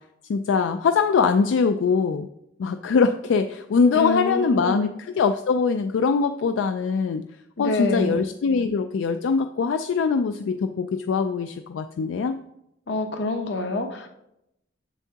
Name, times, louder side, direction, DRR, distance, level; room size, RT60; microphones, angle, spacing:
voice 1, 0.3-2.3 2.6-7.2 7.6-12.3, left 5 dB, 80° left, 8 dB, 0.3 m, -22 dB
voice 2, 3.9-4.9 7.6-8.2 12.9-14.1, left 2 dB, 65° left, 5 dB, 0.8 m, -26 dB
7.1 x 7.0 x 2.9 m, 0.82 s
head